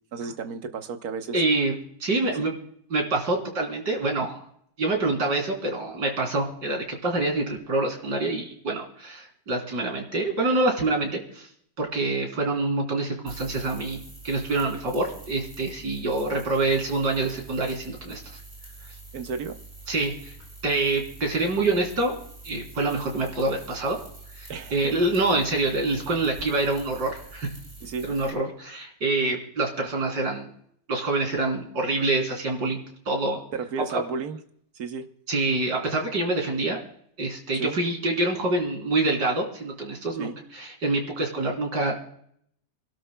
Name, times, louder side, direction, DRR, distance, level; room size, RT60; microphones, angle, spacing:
voice 1, 0.1-1.4 2.3-2.4 16.0-16.1 19.1-19.6 24.5-25.0 27.8-28.1 33.5-34.4 34.7-35.1 37.5-37.8 40.2-40.3, right 5 dB, 65° right, 7 dB, 1.5 m, -33 dB
voice 2, 1.3-1.7 2.0-2.5 2.9-4.4 4.8-11.5 11.8-18.2 19.9-20.3 20.6-22.2 22.4-24.0 24.4-27.5 28.0-30.5 30.9-32.8 33.1-33.4 33.9-34.0 35.3-36.8 37.2-42.0, right 2 dB, 90° right, 1 dB, 4.1 m, -26 dB
sound 1, 13.3-28.3, right 3 dB, 25° right, 5.5 m, -45 dB
29.0 x 12.5 x 2.3 m, 0.67 s
omnidirectional pair, 1.8 m